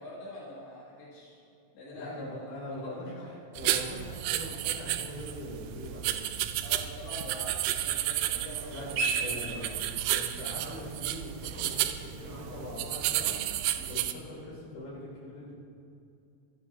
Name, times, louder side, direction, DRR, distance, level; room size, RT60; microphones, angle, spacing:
voice 1, 0.0-1.4 1.7-3.0 4.4-4.6 6.6-9.7 13.7-14.0, left 1 dB, 75° left, -7 dB, 4.5 m, -45 dB
voice 2, 1.9-6.3 8.7-9.7 10.1-13.4 13.9-15.6, left 1 dB, 55° left, -4 dB, 4.6 m, -42 dB
sound 1, 3.6-14.1, right 13 dB, 85° right, 2.3 m, -32 dB
sound 2, 8.2-14.1, right 3 dB, 60° right, 2.1 m, -40 dB
25.5 x 11.0 x 2.9 m, 2.6 s
omnidirectional pair, 5.2 m